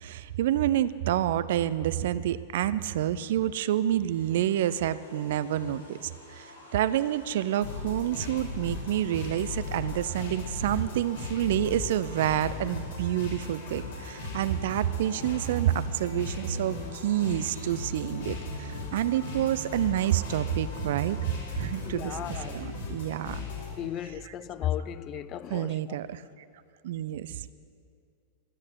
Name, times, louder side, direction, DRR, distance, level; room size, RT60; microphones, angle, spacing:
voice 1, 0.0-21.2 21.5-23.4 24.2-24.3 25.5-26.2 26.8-27.5, right 12 dB, 55° right, 16 dB, 0.5 m, -28 dB
sound 1, 4.1-21.8, left 4 dB, 85° left, 3.8 m, -50 dB
sound 2, 7.6-23.7, left 3 dB, 65° left, 4.0 m, -37 dB
voice 2, 21.8-22.6 23.8-26.0, left 11 dB, 35° left, 14 dB, 0.5 m, -35 dB
13.5 x 8.6 x 9.8 m, 2.4 s
figure-of-eight pair, 90°, 0 cm